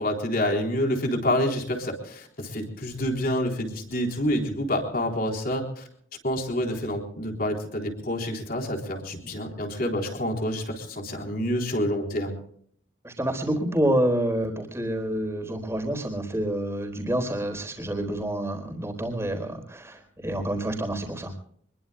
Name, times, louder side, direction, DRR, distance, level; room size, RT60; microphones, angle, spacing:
voice 1, 0.0-5.9 6.2-12.3, left 1 dB, 45° left, 2 dB, 3.9 m, -28 dB
voice 2, 13.0-21.3, right 1 dB, 15° right, 3 dB, 4.2 m, -28 dB
26.0 x 21.5 x 2.3 m, 0.63 s
head